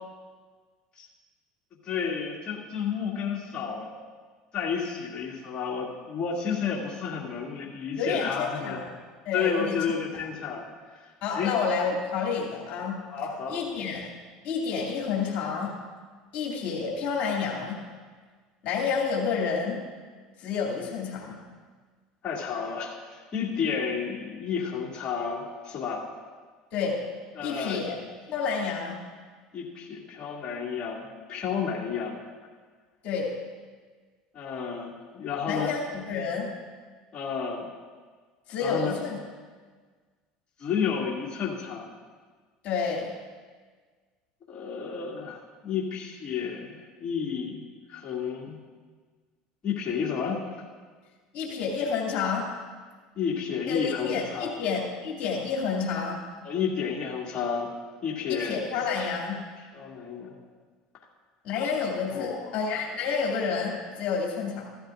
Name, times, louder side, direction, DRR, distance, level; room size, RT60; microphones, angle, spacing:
voice 1, 1.8-3.9 4.5-8.8 9.3-10.6 11.3-11.5 13.1-13.6 22.2-26.1 27.4-27.8 29.5-32.2 34.3-35.7 37.1-37.7 38.6-38.9 40.6-41.9 44.5-47.6 47.9-48.6 49.6-50.4 53.1-54.5 56.4-57.7 58.0-58.7 59.7-60.4 62.1-62.5, left 6 dB, 35° left, -5 dB, 2.5 m, -31 dB
voice 2, 8.0-8.9 9.2-9.8 10.1-10.2 11.2-13.0 13.5-14.1 14.4-15.7 16.3-17.8 18.6-19.8 20.4-21.3 26.7-27.0 27.4-27.9 28.3-29.0 33.0-33.3 35.5-36.5 38.5-39.2 42.6-43.1 51.3-52.5 53.7-56.2 58.3-59.4 61.4-64.6, left 5 dB, 60° left, -3 dB, 2.6 m, -29 dB
15.0 x 13.0 x 2.6 m, 1.5 s
supercardioid pair, 90°, 3 cm